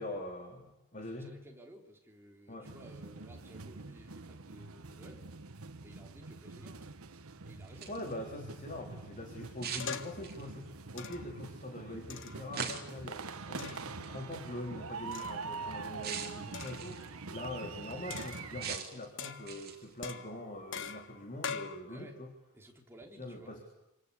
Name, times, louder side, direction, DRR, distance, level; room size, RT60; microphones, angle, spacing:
voice 1, 0.0-1.4 2.5-2.7 7.9-22.3 23.2-23.6, left 1 dB, 35° left, 2 dB, 3.5 m, -43 dB
voice 2, 1.1-5.3 5.8-6.9 7.4-7.9 21.9-22.2 22.5-23.6, right 1 dB, 10° right, 1 dB, 3.5 m, -56 dB
sound 1, 2.6-18.8, right 4 dB, 85° right, 1.3 m, -45 dB
sound 2, 7.6-8.1 9.6-10.6 12.5-13.1 14.0-14.2 16.0-17.1 18.6-19.1 19.5-19.9, right 7 dB, 45° right, 3.3 m, -41 dB
sound 3, 9.8-10.3 11.0-11.4 12.1-13.0 13.6-13.9 15.1-15.6 16.5-16.9 18.1-18.8 19.2-19.7 20.0-21.8, left 6 dB, 60° left, 1.5 m, -43 dB
27.0 x 25.5 x 8.3 m, 0.87 s
head